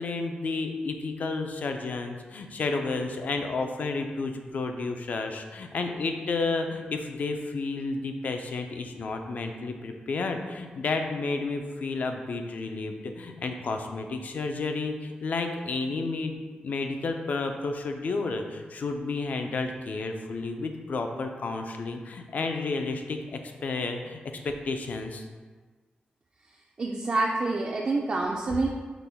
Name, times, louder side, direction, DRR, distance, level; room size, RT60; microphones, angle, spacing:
voice 1, 0.0-25.3, left 3 dB, 60° left, 5 dB, 0.4 m, -31 dB
voice 2, 26.8-28.7, right 3 dB, 40° right, -1 dB, 0.3 m, -27 dB
5.8 x 2.2 x 3.4 m, 1.4 s
wide cardioid pair, 135°, 3 cm